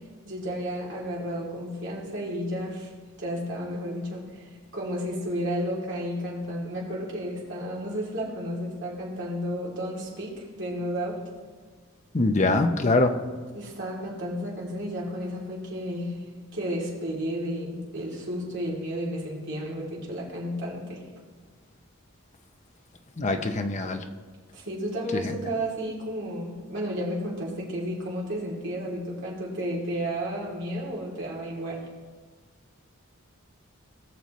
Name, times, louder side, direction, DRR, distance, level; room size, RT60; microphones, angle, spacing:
voice 1, 0.2-2.9 3.2-11.2 13.5-21.0 24.5-31.9, equal, 60° right, -4 dB, 2.9 m, -32 dB
voice 2, 12.1-13.1 23.2-24.0 25.1-25.2, left 2 dB, 35° left, 6 dB, 0.7 m, -23 dB
19.5 x 6.8 x 3.1 m, 1.5 s
head